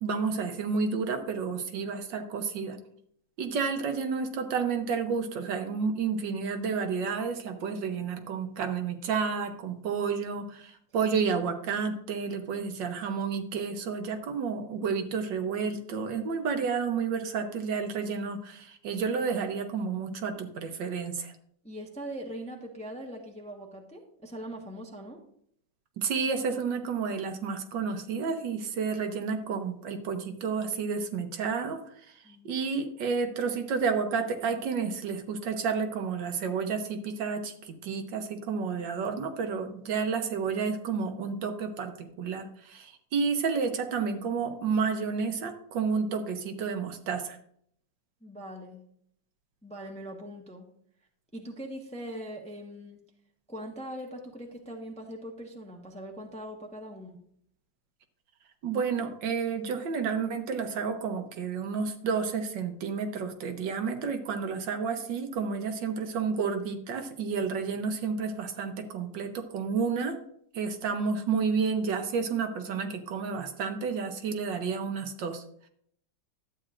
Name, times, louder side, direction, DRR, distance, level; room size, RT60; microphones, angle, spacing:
voice 1, 0.0-2.8 3.4-21.3 26.0-47.4 58.6-70.2 70.5-75.4, right 5 dB, 75° right, 6 dB, 1.5 m, -31 dB
voice 2, 21.6-25.2 32.2-32.5 48.2-48.8 49.6-50.7 51.3-53.0 53.5-57.2, equal, 5° left, 1 dB, 0.7 m, -41 dB
12.0 x 8.6 x 2.5 m, 0.67 s
omnidirectional pair, 2.0 m